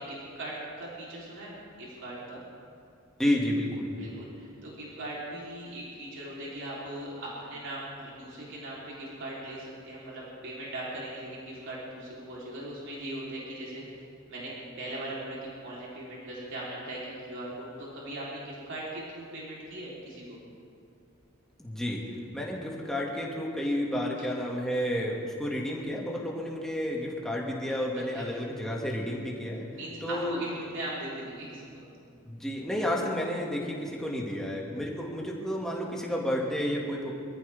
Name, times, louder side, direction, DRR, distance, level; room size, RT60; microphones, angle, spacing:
voice 1, 0.0-2.4 3.9-14.5 14.8-20.4 28.1-28.3 29.7-31.8, right 1 dB, 60° right, -6 dB, 3.8 m, -39 dB
voice 2, 3.2-3.9 21.6-22.0 22.3-29.7 30.0-30.4 32.3-37.1, equal, ahead, -3 dB, 2.2 m, -31 dB
25.0 x 14.0 x 3.6 m, 2.4 s
head